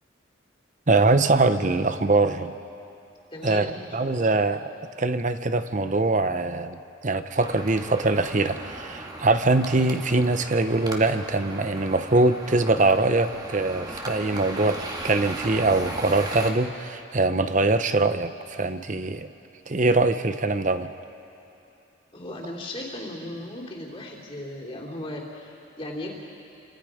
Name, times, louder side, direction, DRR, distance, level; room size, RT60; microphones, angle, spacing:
voice 1, 0.9-2.5 3.4-4.6 5.0-19.3 19.7-20.9, right 2 dB, 40° right, 10 dB, 0.8 m, -23 dB
voice 2, 3.3-4.3 22.1-26.1, left 1 dB, 30° left, -3 dB, 3.1 m, -37 dB
sound 1, 7.4-16.5, right 1 dB, 20° right, 2.0 m, -37 dB
29.5 x 25.5 x 5.1 m, 2.7 s
head